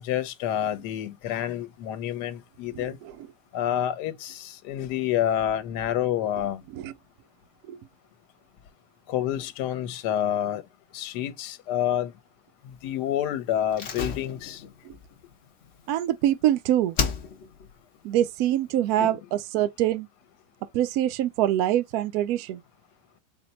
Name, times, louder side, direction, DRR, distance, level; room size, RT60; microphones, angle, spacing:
voice 1, 0.0-3.0 3.5-6.6 9.1-10.6 10.9-12.1 12.6-14.6 19.0-19.1, left 11 dB, 80° left, 1.2 m, -28 dB
voice 2, 2.7-3.2 6.7-6.9 7.7-7.8 14.8-15.0 15.9-17.0 18.0-20.1 20.7-22.6, right 12 dB, 70° right, 1.0 m, -25 dB
Slam, 13.7-16.5 16.9-17.7 18.0-18.1, left 6 dB, 50° left, 0.9 m, -33 dB
4.2 x 2.1 x 4.0 m
omnidirectional pair, 1.8 m